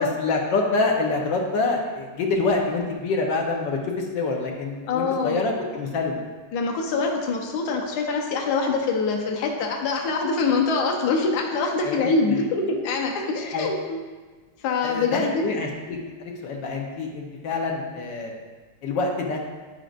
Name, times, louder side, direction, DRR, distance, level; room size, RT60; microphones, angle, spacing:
voice 1, 0.0-6.2 11.8-12.2 13.5-13.7 14.8-18.3 18.8-19.4, left 3 dB, 85° left, 0 dB, 1.5 m, -26 dB
voice 2, 4.9-5.4 6.5-14.0 14.6-15.4, left 4 dB, 65° left, 1 dB, 1.3 m, -24 dB
10.5 x 5.0 x 2.5 m, 1.3 s
omnidirectional pair, 2.0 m